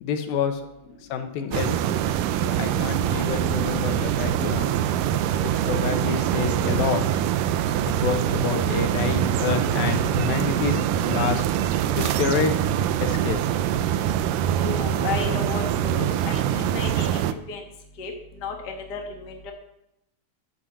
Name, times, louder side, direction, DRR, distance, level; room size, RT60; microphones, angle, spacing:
voice 1, 0.0-0.6 1.1-1.8 2.4-4.7 5.4-7.0 7.9-11.4 12.0-12.5 13.0-13.4, left 7 dB, 85° left, 7 dB, 3.0 m, -28 dB
sound 1, 1.5-17.3, right 10 dB, 75° right, 2.1 m, -24 dB
voice 2, 14.4-17.6 18.0-19.5, left 4 dB, 55° left, 2 dB, 1.1 m, -33 dB
11.0 x 8.7 x 7.4 m, 0.86 s
omnidirectional pair, 4.1 m